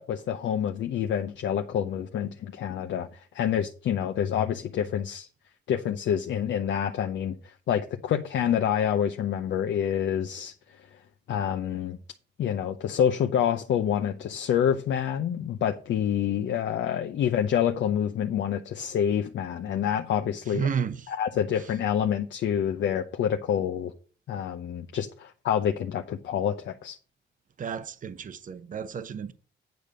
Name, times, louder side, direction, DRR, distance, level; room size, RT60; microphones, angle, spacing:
voice 1, 0.0-5.3 5.7-10.5 11.3-12.0 12.4-20.7 21.1-23.9 24.3-27.0, left 9 dB, 70° left, 0.8 m, -27 dB
voice 2, 20.5-21.1 27.6-29.3, right 6 dB, 40° right, 0.8 m, -32 dB
9.3 x 5.1 x 6.5 m
cardioid pair, 90°, 20 cm